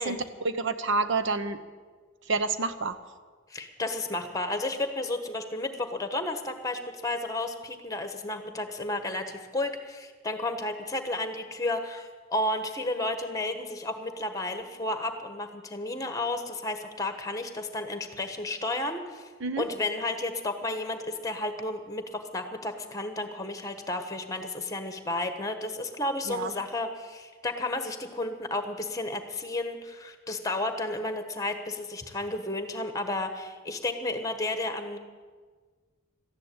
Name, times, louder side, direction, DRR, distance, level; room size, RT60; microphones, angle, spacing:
voice 1, 0.0-1.6 2.3-3.0 19.4-19.6 26.3-26.5, right 4 dB, 60° right, 11 dB, 0.9 m, -28 dB
voice 2, 3.5-19.3 19.6-35.0, left 2 dB, 15° left, 7 dB, 1.3 m, -32 dB
14.0 x 10.5 x 8.8 m, 1.5 s
head